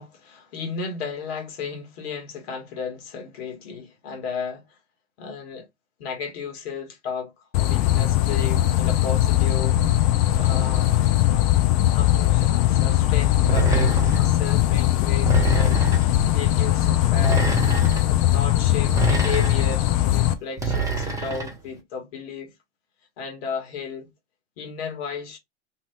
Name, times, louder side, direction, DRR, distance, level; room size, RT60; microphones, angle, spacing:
voice 1, 0.0-4.6 5.2-5.7 6.0-7.3 7.6-9.8 10.3-11.0 11.9-15.8 16.3-17.5 18.1-22.5 23.2-24.1 24.6-25.4, left 5 dB, 60° left, 1.6 m, -34 dB
sound 1, 7.5-20.3, left 14 dB, 35° left, 0.6 m, -20 dB
sound 2, 13.5-14.3 15.2-16.1 17.1-18.0 18.9-19.8 20.6-21.5, right 4 dB, 10° right, 1.1 m, -26 dB
2.8 x 2.7 x 3.3 m
hypercardioid pair, 115°, 36 cm